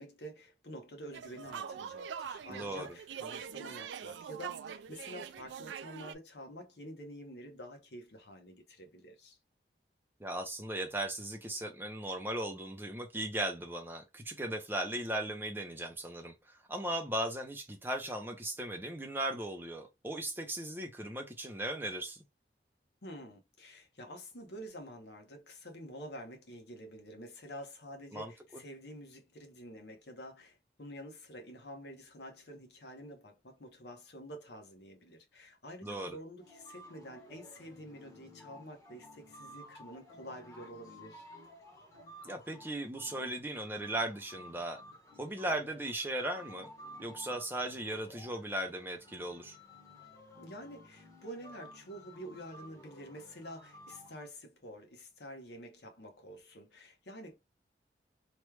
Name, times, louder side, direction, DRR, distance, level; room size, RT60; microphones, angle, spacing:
voice 1, 0.0-9.4 23.0-41.3 50.4-57.4, equal, 70° left, 0.9 m, -48 dB
sound 1, 1.1-6.1, right 7 dB, 85° right, 0.3 m, -43 dB
voice 2, 2.5-2.9 10.2-22.2 28.1-28.3 35.8-36.2 42.2-44.8 45.2-46.7 47.0-49.6, right 1 dB, 10° right, 0.6 m, -37 dB
sound 2, 36.4-54.3, left 1 dB, 15° left, 1.0 m, -54 dB
3.1 x 2.3 x 3.2 m
head